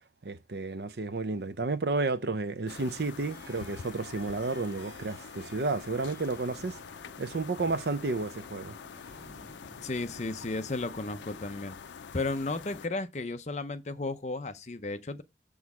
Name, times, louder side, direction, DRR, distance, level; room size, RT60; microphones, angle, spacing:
voice 1, 0.2-6.8 7.2-8.8, right 3 dB, 65° right, 0.6 m, -32 dB
sound 1, 2.7-12.9, left 6 dB, 85° left, 0.5 m, -46 dB
Harp, 3.0-10.7, right 2 dB, 85° right, 2.7 m, -57 dB
sound 2, 5.7-11.7, right 1 dB, 20° right, 1.9 m, -56 dB
voice 2, 9.8-11.7 12.1-15.2, left 2 dB, 40° left, 0.7 m, -34 dB
7.1 x 6.2 x 4.9 m
head